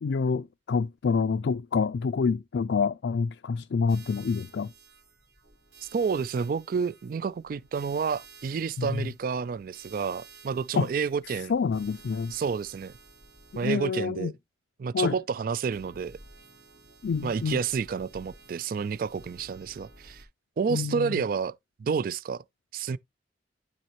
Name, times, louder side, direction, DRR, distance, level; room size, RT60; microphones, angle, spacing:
voice 1, 0.0-4.7 8.8-9.1 10.7-10.9 11.5-12.3 13.6-14.3 14.9-15.1 17.0-17.6 20.7-21.2, left 5 dB, 90° left, 0.4 m, -27 dB
sound 1, 3.9-13.7 15.7-20.3, right 4 dB, 80° right, 3.0 m, -53 dB
voice 2, 5.9-11.5 12.3-12.9 13.6-14.3 14.8-16.2 17.2-20.2 20.6-22.4 22.7-23.0, right 5 dB, 50° right, 0.3 m, -30 dB
12.0 x 4.2 x 3.0 m
head